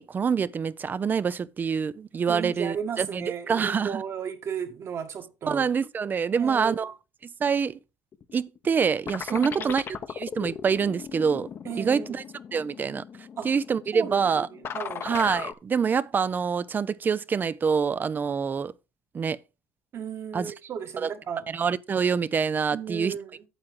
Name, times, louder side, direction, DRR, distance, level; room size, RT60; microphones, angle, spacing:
voice 1, 0.0-4.0 5.5-6.9 7.4-7.8 8.3-9.8 10.1-11.5 11.8-12.2 12.5-13.0 13.4-14.5 15.0-18.7 19.1-19.4 20.3-20.5 21.0-21.1 21.5-23.1, right 6 dB, 30° right, 0.5 m, -26 dB
voice 2, 2.3-5.7 6.3-6.8 9.3-9.7 11.7-12.1 13.4-13.5 13.9-15.0 19.9-21.5 22.7-23.4, right 7 dB, 50° right, 1.7 m, -35 dB
sound 1, 8.1-8.8 9.1-15.5, left 7 dB, 45° left, 0.9 m, -38 dB
9.0 x 7.5 x 3.6 m
cardioid pair, 100°, 6 cm